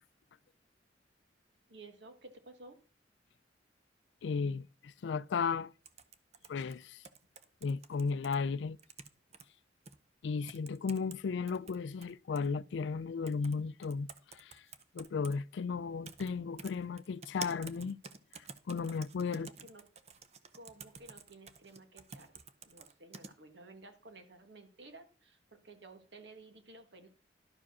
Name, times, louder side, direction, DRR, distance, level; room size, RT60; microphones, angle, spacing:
voice 1, 1.7-2.8 19.3-19.8 20.5-22.3 22.6-27.1, right 2 dB, 70° right, 1.6 m, -54 dB
voice 2, 4.2-5.7 6.5-7.0 7.6-8.8 10.2-14.1 14.3-14.6 14.9-18.0 18.7-19.5, left 5 dB, 75° left, 0.4 m, -35 dB
sound 1, 5.8-8.4 8.8-9.4 9.9-10.0 10.5-11.2 11.5-12.5 13.3-13.6 13.8-15.4 16.0-16.3 16.6-23.3, right 5 dB, 35° right, 0.7 m, -49 dB
11.5 x 4.8 x 6.1 m
head